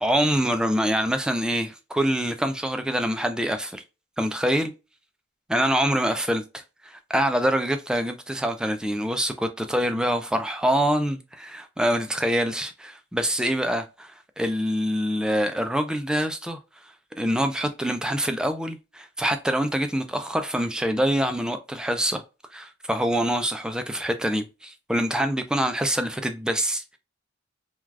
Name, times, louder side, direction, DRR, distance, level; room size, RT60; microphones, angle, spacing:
voice 1, 0.0-3.8 4.2-4.7 5.5-6.4 6.8-16.6 17.2-22.2 22.5-27.0, equal, 5° right, 0.3 m, -25 dB
3.2 x 2.3 x 2.3 m
head